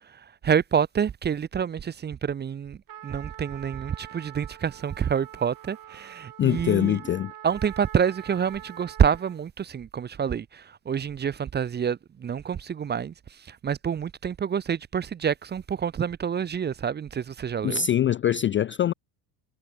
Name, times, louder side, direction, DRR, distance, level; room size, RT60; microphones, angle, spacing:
voice 1, 0.4-2.8 3.0-7.0 7.4-13.1 13.5-17.9, right 7 dB, 20° right, 0.6 m, -27 dB
Trumpet, 2.9-9.4, right 12 dB, 45° right, 2.8 m, -45 dB
voice 2, 6.4-7.3 17.6-18.9, left 10 dB, 25° left, 0.3 m, -23 dB
cardioid pair, 135°, 49 cm